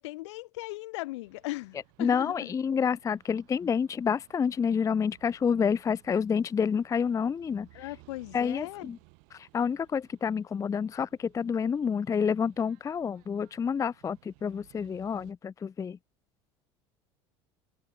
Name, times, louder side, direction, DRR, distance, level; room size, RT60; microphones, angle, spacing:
voice 1, 0.0-2.5 7.7-8.9, left 20 dB, 80° left, 2.5 m, -38 dB
sound 1, 1.2-15.3, right 36 dB, 70° right, 7.7 m, -61 dB
voice 2, 2.0-7.7 8.3-9.0 9.3-16.0, left 6 dB, 20° left, 0.5 m, -28 dB
hypercardioid pair, 85°, 15 cm